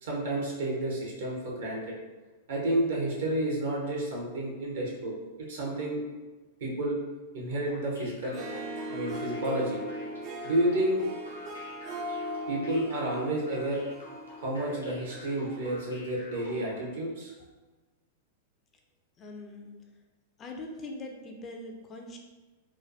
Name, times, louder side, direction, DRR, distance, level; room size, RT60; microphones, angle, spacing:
voice 1, 0.0-1.8 2.5-5.1 5.4-6.0 6.6-7.0 7.3-8.3 8.9-9.8 10.4-11.0 12.5-13.8 14.4-17.3, right 1 dB, 65° right, -2 dB, 0.9 m, -30 dB
sound 1, 7.7-16.8, left 1 dB, 90° left, 0.7 m, -50 dB
Harp, 8.2-15.6, equal, 40° right, 0.5 m, -39 dB
voice 2, 19.2-19.8 20.4-22.2, left 2 dB, 30° left, 2 dB, 0.4 m, -42 dB
3.3 x 2.2 x 2.6 m, 1.2 s
figure-of-eight pair, 95°, 0 cm